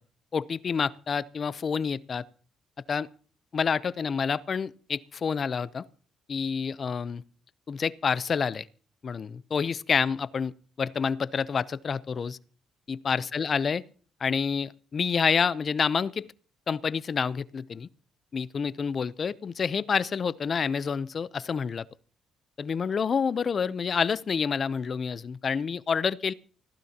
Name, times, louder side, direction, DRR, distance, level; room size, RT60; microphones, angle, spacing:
voice 1, 0.3-2.2 2.9-3.1 3.5-5.9 6.3-7.2 7.7-8.7 9.0-10.5 10.8-12.4 12.9-13.8 14.2-16.3 16.7-17.9 18.3-21.9 22.6-26.3, left 6 dB, 45° left, 0.6 m, -28 dB
24.5 x 15.5 x 2.9 m
cardioid pair, 90°, 0 cm